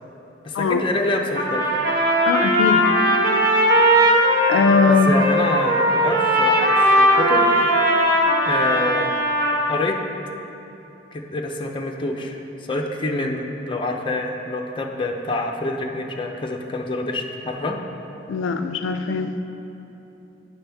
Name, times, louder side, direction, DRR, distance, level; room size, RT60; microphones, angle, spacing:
voice 1, 0.4-1.6 4.9-7.5 8.4-9.1 9.7-10.0 11.1-12.4 12.7-17.8, left 2 dB, 25° left, 1 dB, 0.5 m, -26 dB
Trumpet, 1.3-9.8, equal, 50° right, 1.1 m, -18 dB
voice 2, 2.3-2.8 4.5-5.1 18.3-19.3, left 5 dB, 90° left, 8 dB, 0.3 m, -20 dB
8.4 x 5.9 x 3.4 m, 3.0 s
head